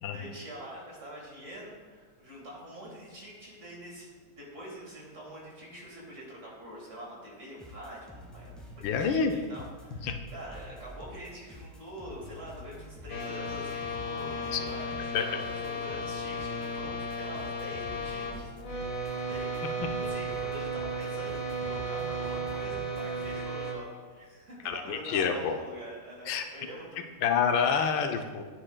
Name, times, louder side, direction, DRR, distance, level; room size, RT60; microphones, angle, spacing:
voice 1, 0.1-4.1 4.4-19.5 20.0-27.1, equal, 40° right, -3 dB, 1.9 m, -45 dB
sound 1, 7.6-23.4, equal, ahead, 0.8 m, -48 dB
voice 2, 8.8-9.3 10.0-10.1 14.5-14.6 15.1-15.4 24.6-25.6 26.3-26.5 27.2-28.4, left 6 dB, 85° left, 6 dB, 1.4 m, -27 dB
sound 2, 13.1-18.3 18.6-23.7, right 1 dB, 60° left, 1.7 m, -34 dB
9.7 x 8.6 x 2.2 m, 1.5 s
omnidirectional pair, 2.0 m